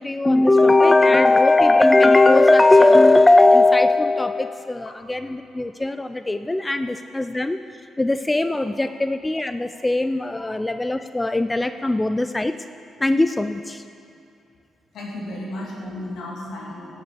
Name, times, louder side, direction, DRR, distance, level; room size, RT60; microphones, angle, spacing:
voice 1, 0.0-7.6 8.0-12.5 13.0-13.8, left 2 dB, 20° left, 10 dB, 0.4 m, -18 dB
voice 2, 14.9-17.0, left 1 dB, 75° left, -3 dB, 2.9 m, -34 dB
15.5 x 6.2 x 6.8 m, 2.5 s
supercardioid pair, 55°, 0 cm